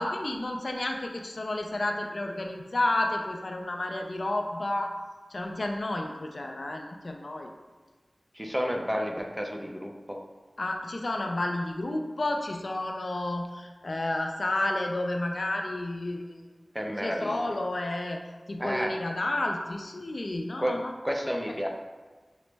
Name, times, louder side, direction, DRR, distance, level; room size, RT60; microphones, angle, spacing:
voice 1, 0.0-5.0 5.3-7.5 10.6-16.5 17.0-18.2 18.5-20.9, left 1 dB, 70° left, 3 dB, 0.3 m, -31 dB
voice 2, 8.3-10.2 16.7-17.4 18.6-18.9 20.6-20.7 21.0-21.7, equal, 5° right, 1 dB, 0.5 m, -31 dB
6.0 x 2.0 x 3.3 m, 1.3 s
wide cardioid pair, 50°, 0 cm